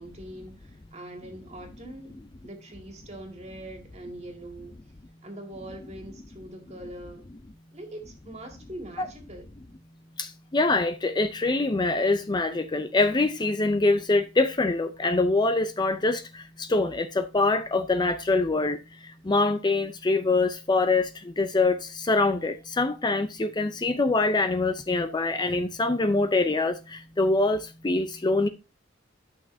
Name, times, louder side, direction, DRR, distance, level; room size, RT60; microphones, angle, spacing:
voice 1, 0.0-4.8 5.2-7.2 7.7-9.5, right 1 dB, 35° right, 2.2 m, -42 dB
voice 2, 10.2-28.5, left 3 dB, 25° left, 0.5 m, -24 dB
12.0 x 6.1 x 2.6 m
head